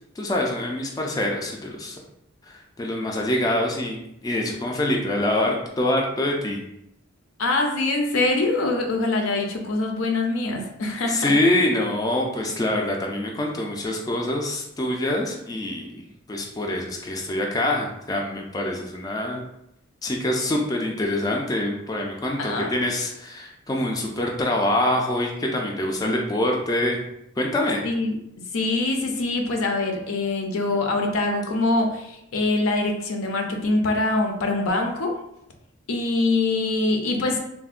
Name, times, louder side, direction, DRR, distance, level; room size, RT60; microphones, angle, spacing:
voice 1, 0.2-2.0 2.4-6.6 11.1-19.4 20.0-27.0 27.4-27.8, left 1 dB, 20° left, 0 dB, 0.3 m, -25 dB
voice 2, 7.4-11.3 14.2-14.3 22.4-22.7 27.8-28.2 28.5-35.1 35.9-37.4, left 2 dB, 80° left, 3 dB, 0.5 m, -24 dB
3.4 x 2.1 x 2.4 m, 0.80 s
head